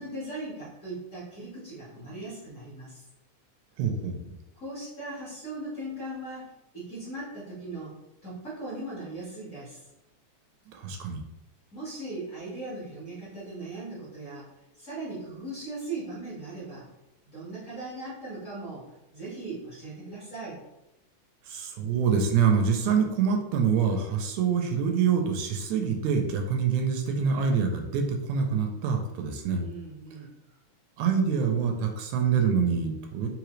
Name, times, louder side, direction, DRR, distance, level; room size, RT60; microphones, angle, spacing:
voice 1, 0.0-3.0 4.5-7.9 8.2-9.9 11.7-14.5 14.7-16.9 17.3-18.9 19.1-20.6 29.6-30.3, right 2 dB, 35° left, -11 dB, 1.4 m, -38 dB
voice 2, 3.8-4.2 10.7-11.2 21.5-29.6 31.0-33.3, right 6 dB, 80° right, 4 dB, 1.9 m, -25 dB
4.9 x 3.2 x 3.1 m, 0.93 s
omnidirectional pair, 3.4 m